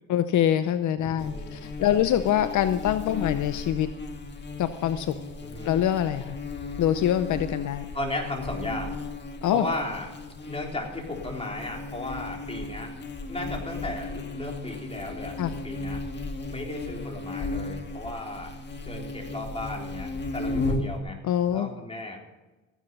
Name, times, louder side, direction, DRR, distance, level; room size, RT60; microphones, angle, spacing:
voice 1, 0.1-3.9 4.6-5.1 5.6-6.4 6.8-7.9 9.4-9.6 15.4-15.5 21.2-21.7, left 10 dB, 75° left, 11 dB, 0.8 m, -24 dB
voice 2, 1.0-2.0 3.1-3.3 5.4-5.7 7.9-9.0 9.5-10.1 10.5-12.9 13.3-16.0 16.5-18.6 18.8-21.2 21.5-22.2, left 2 dB, 20° left, 0 dB, 3.8 m, -35 dB
Buzz, 1.2-21.0, left 2 dB, 35° left, 1.9 m, -35 dB
14.5 x 10.0 x 5.4 m, 1.1 s
cardioid pair, 90°, 30 cm